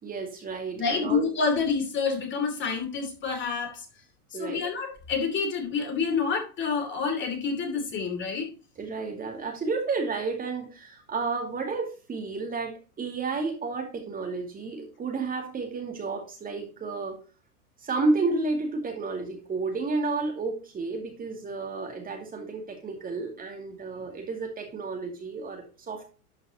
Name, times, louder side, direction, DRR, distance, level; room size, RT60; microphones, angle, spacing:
voice 1, 0.0-1.2 4.3-4.6 8.8-17.2 17.8-26.1, right 3 dB, 20° right, 3 dB, 2.4 m, -31 dB
voice 2, 0.8-3.9 4.3-8.5, left 5 dB, 25° left, 4 dB, 2.8 m, -28 dB
12.0 x 5.7 x 2.9 m, 0.34 s
hypercardioid pair, 110°, 45 cm